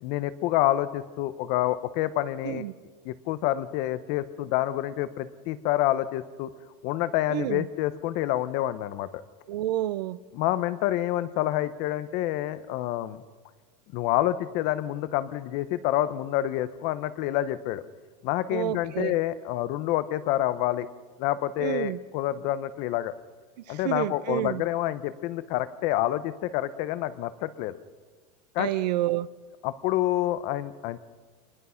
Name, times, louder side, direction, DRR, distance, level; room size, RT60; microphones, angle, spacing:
voice 1, 0.0-2.6 3.0-6.5 6.8-9.1 10.3-13.2 13.9-17.8 18.2-20.9 21.2-23.1 23.7-27.7 28.5-28.9 29.6-31.0, left 14 dB, 40° left, 14 dB, 0.8 m, -28 dB
voice 2, 7.3-7.7 9.5-10.2 18.5-19.1 21.6-22.0 23.7-24.6 28.6-29.3, right 15 dB, 80° right, 18 dB, 0.8 m, -29 dB
26.5 x 21.0 x 5.8 m, 1.5 s
supercardioid pair, 170°, 21 cm